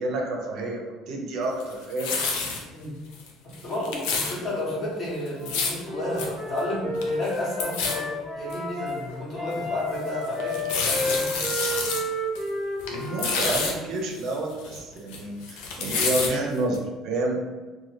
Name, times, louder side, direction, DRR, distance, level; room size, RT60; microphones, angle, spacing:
voice 1, 0.0-2.2 12.9-17.5, right 2 dB, 60° right, 0 dB, 0.6 m, -29 dB
sound 1, 1.6-2.6 3.1-3.3 3.5-4.3 5.3-5.8 6.2-6.3 6.6-6.7 6.9-7.3 7.6-7.9 8.5-8.6 9.2-9.3 10.4-12.0 12.4-12.5 12.8-13.7 14.2-15.2 15.4-16.3 16.7-16.8, left 4 dB, 90° left, 0.5 m, -28 dB
voice 2, 3.4-11.3, left 1 dB, 40° left, -6 dB, 1.1 m, -32 dB
Wind instrument woodwind instrument, 5.4-9.0 9.3-13.5, left 1 dB, ahead, 1.1 m, -31 dB
2.8 x 2.2 x 3.2 m, 1.3 s
cardioid pair, 120°, 0 cm